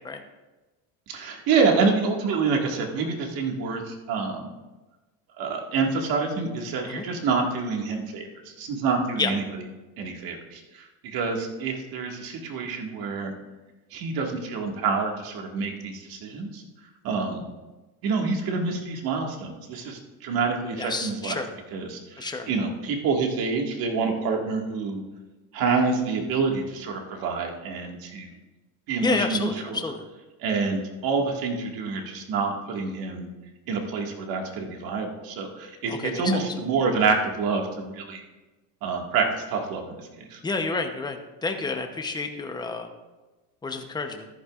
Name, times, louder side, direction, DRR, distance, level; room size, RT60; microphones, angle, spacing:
voice 1, 1.1-4.5 5.4-9.4 10.0-13.3 13.9-16.6 17.0-17.4 18.0-21.4 21.7-25.0 25.5-28.3 28.9-29.8 30.4-33.3 33.7-38.2 38.8-40.4, right 4 dB, 60° right, 2 dB, 1.9 m, -27 dB
voice 2, 20.8-21.5 22.2-22.5 29.0-30.0 35.9-36.4 40.4-42.9 43.6-44.3, left 3 dB, 10° left, 5 dB, 0.8 m, -29 dB
14.0 x 11.0 x 2.4 m, 1.2 s
cardioid pair, 140°, 41 cm